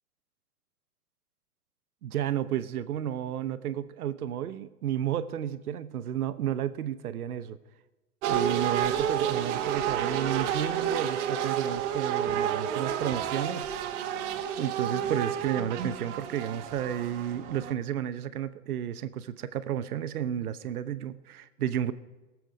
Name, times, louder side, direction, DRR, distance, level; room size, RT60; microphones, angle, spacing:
voice 1, 2.0-7.6 8.3-13.8 14.6-21.9, right 10 dB, 75° right, 13 dB, 1.0 m, -32 dB
sound 1, 8.2-17.7, right 9 dB, 50° right, 1.6 m, -30 dB
20.5 x 7.6 x 5.1 m, 1.1 s
hypercardioid pair, 120°, 45 cm